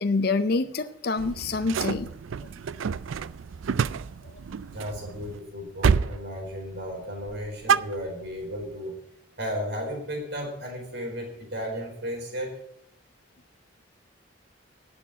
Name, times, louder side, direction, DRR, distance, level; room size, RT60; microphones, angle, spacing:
voice 1, 0.0-2.1, left 3 dB, 50° left, 10 dB, 0.5 m, -26 dB
sound 1, 1.2-5.4 5.8-6.2 6.5-6.9 7.2-8.5, right 6 dB, 80° right, 0.4 m, -28 dB
voice 2, 4.7-8.9 9.4-12.5, equal, 55° right, 1 dB, 4.3 m, -34 dB
11.0 x 7.0 x 8.3 m, 0.76 s
head